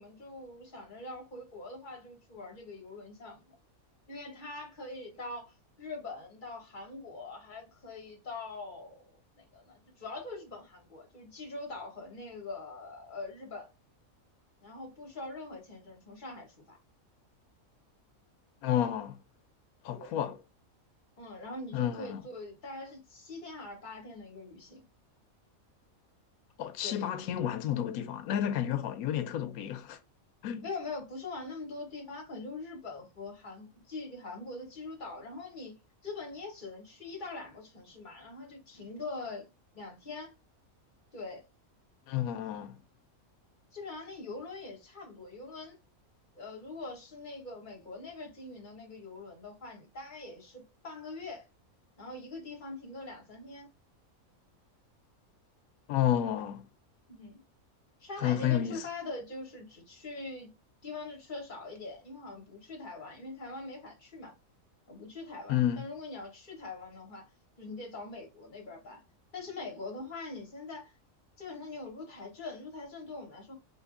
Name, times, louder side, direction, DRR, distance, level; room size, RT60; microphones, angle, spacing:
voice 1, 0.0-3.6 4.1-9.0 9.4-13.7 14.6-16.8 19.9-20.2 21.2-24.8 26.8-27.1 30.6-35.8 36.0-39.5 39.7-40.3 41.1-41.4 43.7-45.8 46.3-51.4 52.0-53.7 57.1-57.4 58.0-60.5 60.8-64.3 64.9-67.3 67.6-69.0 69.3-70.9 71.4-73.5, left 3 dB, 35° left, 1.3 m, -43 dB
voice 2, 18.6-19.2 19.8-20.4 21.7-22.2 26.6-30.0 30.4-30.7 42.1-42.7 55.9-56.6 58.2-58.8 65.5-65.9, left 10 dB, 90° left, 1.0 m, -30 dB
4.3 x 2.6 x 2.4 m
omnidirectional pair, 1.5 m